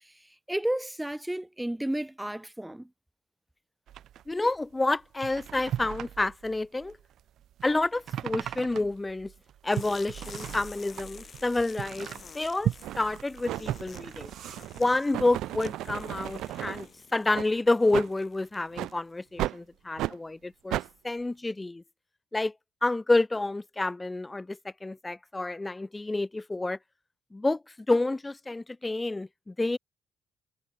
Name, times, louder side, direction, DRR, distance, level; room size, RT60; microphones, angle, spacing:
voice 1, 0.5-2.9, right 1 dB, 5° right, 1.6 m, -32 dB
sound 1, 3.9-15.4 15.8-16.5, right 11 dB, 70° right, 2.5 m, -39 dB
voice 2, 4.3-7.0 7.6-9.3 9.6-12.1 12.3-12.7 13.0-14.3 14.7-21.8 22.3-22.5 22.8-26.8 27.3-29.8, left 2 dB, 15° left, 0.8 m, -29 dB
sound 2, 9.7-19.2, left 6 dB, 40° left, 7.1 m, -50 dB
sound 3, 12.0-12.1 12.8-13.1 13.5-16.9 17.3-17.5 17.9-18.1 18.7-18.9 19.4-19.6 20.0-20.2 20.7-20.9, right 14 dB, 90° right, 0.9 m, -34 dB
cardioid pair, 90°, 0 cm